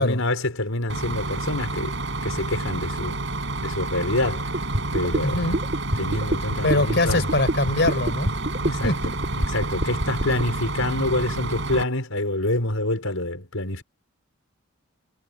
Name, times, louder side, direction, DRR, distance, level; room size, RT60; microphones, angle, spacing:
voice 1, 0.0-3.2 3.6-4.5 4.9-5.6 6.0-7.3 8.7-9.0 9.4-13.8, left 1 dB, 80° left, 5.2 m, -26 dB
Bus, 0.9-11.8, right 2 dB, 60° right, 6.7 m, -29 dB
sound 1, 4.5-10.4, right 1 dB, 45° right, 3.7 m, -26 dB
voice 2, 5.2-5.6 6.6-8.3 8.6-9.1, left 2 dB, 55° left, 4.8 m, -23 dB
head